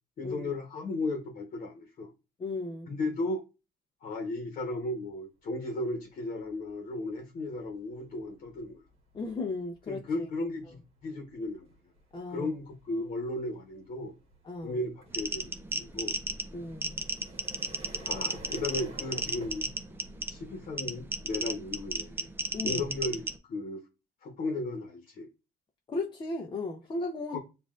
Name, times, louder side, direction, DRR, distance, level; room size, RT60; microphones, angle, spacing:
voice 1, 0.2-2.1 2.9-3.4 4.0-8.8 9.9-11.7 12.3-14.1 14.6-16.2 18.0-19.7 20.3-22.3 22.6-23.8 24.2-25.3 27.3-27.4, left 2 dB, 50° left, 1.1 m, -35 dB
voice 2, 2.4-2.9 9.1-10.0 12.1-12.5 14.4-14.8 16.5-17.0 22.5-22.8 25.9-27.4, left 3 dB, 25° left, 0.6 m, -35 dB
sound 1, 5.8-6.0 6.4-23.1, right 1 dB, 35° right, 1.5 m, -53 dB
sound 2, 15.1-23.4, right 2 dB, 15° right, 0.5 m, -34 dB
7.1 x 2.5 x 2.5 m
cardioid pair, 110°, 17 cm